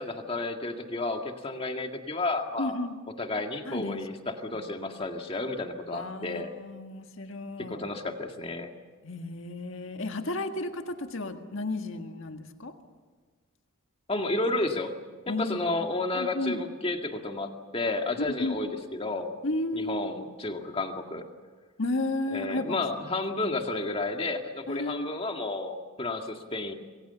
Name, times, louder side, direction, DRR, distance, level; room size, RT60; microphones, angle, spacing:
voice 1, 0.0-2.7 3.2-6.5 7.6-8.7 14.1-14.9 15.3-19.3 19.7-21.2 22.3-26.7, left 2 dB, 25° left, 4 dB, 2.0 m, -32 dB
voice 2, 2.6-2.9 3.7-4.0 4.5-4.6 5.9-7.8 9.0-12.7 15.3-15.6 16.1-16.6 18.2-18.6 19.4-20.3 21.8-22.8 24.7-25.1, left 2 dB, 65° left, 6 dB, 1.7 m, -33 dB
27.5 x 22.5 x 7.0 m, 1.5 s
head